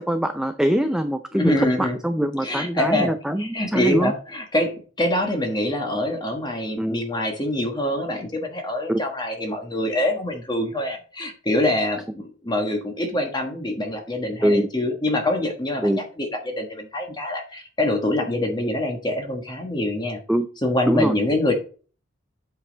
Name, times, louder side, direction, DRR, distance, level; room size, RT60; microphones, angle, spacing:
voice 1, 0.0-4.1 6.8-7.0 8.9-9.0 14.4-14.7 15.8-16.0 20.3-20.5 20.9-21.1, equal, 5° right, 7 dB, 0.4 m, -23 dB
voice 2, 1.3-2.0 2.4-3.1 3.4-20.2 20.6-21.5, left 1 dB, 20° left, 3 dB, 1.3 m, -25 dB
8.4 x 5.3 x 3.9 m, 0.37 s
head